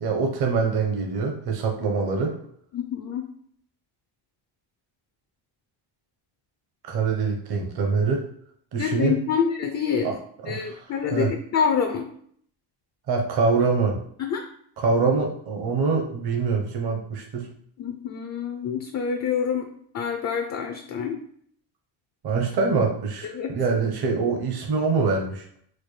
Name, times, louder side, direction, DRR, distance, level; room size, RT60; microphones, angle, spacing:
voice 1, 0.0-2.3 6.8-8.2 8.7-9.2 10.0-10.1 10.4-10.8 11.1-11.3 13.1-14.0 14.8-17.5 22.2-25.4, right 4 dB, 50° right, 2 dB, 0.9 m, -24 dB
voice 2, 2.7-3.3 8.8-10.1 10.5-12.1 14.2-14.5 17.8-21.2 23.2-23.5, left 7 dB, 35° left, 4 dB, 0.4 m, -27 dB
4.3 x 2.2 x 3.1 m, 0.64 s
cardioid pair, 105°, 50 cm